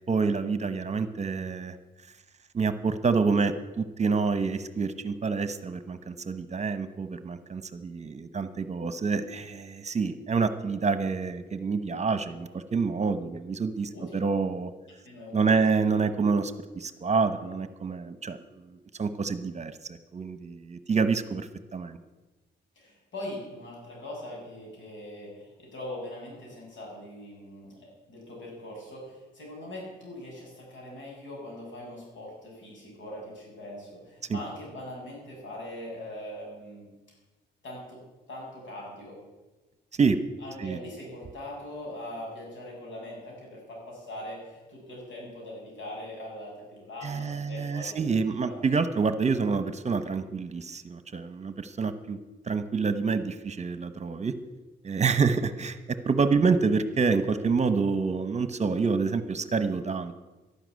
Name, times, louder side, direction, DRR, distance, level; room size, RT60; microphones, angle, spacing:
voice 1, 0.0-1.8 2.5-14.7 15.3-18.6 19.0-22.0 34.3-34.4 40.0-40.2 40.6-40.8 47.0-52.2 52.5-54.4 54.8-60.1, right 5 dB, 35° right, 12 dB, 1.0 m, -27 dB
voice 2, 15.0-15.8 22.8-36.9 37.6-38.0 38.3-39.2 40.4-48.2 48.4-48.6, left 1 dB, 90° left, -2 dB, 7.2 m, -41 dB
12.0 x 11.5 x 9.4 m, 1.2 s
wide cardioid pair, 125°, 19 cm